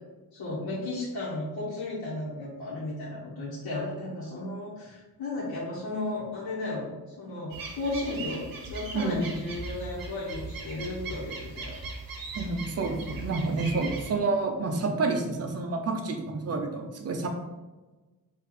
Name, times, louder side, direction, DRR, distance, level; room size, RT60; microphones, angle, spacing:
voice 1, 0.3-11.8, left 2 dB, 85° left, -9 dB, 1.3 m, -34 dB
sound 1, 7.5-14.1, right 3 dB, 65° right, 0.9 m, -39 dB
voice 2, 8.9-9.3 12.3-17.3, right 3 dB, 45° right, 4 dB, 0.6 m, -29 dB
4.7 x 2.7 x 3.9 m, 1.2 s
wide cardioid pair, 160°, 36 cm